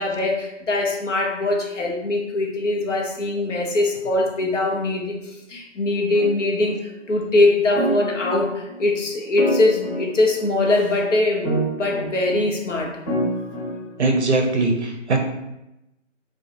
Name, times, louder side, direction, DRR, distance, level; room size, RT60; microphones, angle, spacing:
voice 1, 0.0-12.9, left 2 dB, 70° left, 0 dB, 0.7 m, -22 dB
sound 1, 6.1-6.7 7.7-8.8 9.4-10.8 11.4-12.5 13.1-14.1, right 1 dB, 35° left, 1.1 m, -27 dB
voice 2, 14.0-15.2, right 3 dB, 60° right, 3 dB, 0.5 m, -20 dB
2.5 x 2.2 x 2.6 m, 0.90 s
figure-of-eight pair, 170°, 38 cm